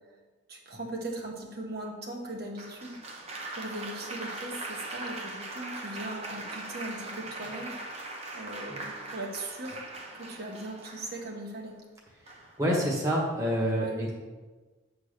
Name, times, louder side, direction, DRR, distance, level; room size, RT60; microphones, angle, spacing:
voice 1, 0.5-3.0 3.5-8.0 8.3-9.8 10.1-11.7 13.8-14.0, right 1 dB, 55° right, 0 dB, 1.6 m, -39 dB
Applause, 2.6-11.4 12.3-12.7, right 2 dB, 35° right, 1.0 m, -40 dB
voice 2, 12.6-14.1, equal, 15° right, -3 dB, 1.5 m, -27 dB
9.4 x 4.0 x 6.7 m, 1.3 s
head